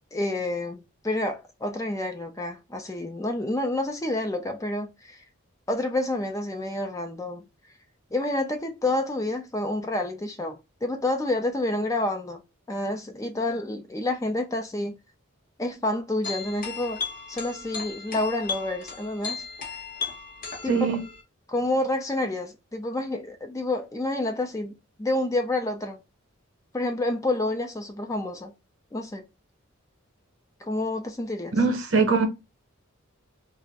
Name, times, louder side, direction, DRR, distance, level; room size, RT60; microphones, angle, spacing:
voice 1, 0.1-5.2 5.7-7.5 8.1-12.4 12.7-15.0 15.6-17.0 17.3-19.4 20.6-20.8 21.5-26.0 26.7-28.5 28.9-29.2 30.6-31.6, left 1 dB, 15° left, 0.4 m, -29 dB
sound 1, 16.2-21.2, left 5 dB, 40° left, 0.7 m, -35 dB
voice 2, 20.7-21.0 31.5-32.3, right 4 dB, 65° right, 0.8 m, -22 dB
2.4 x 2.0 x 3.4 m
head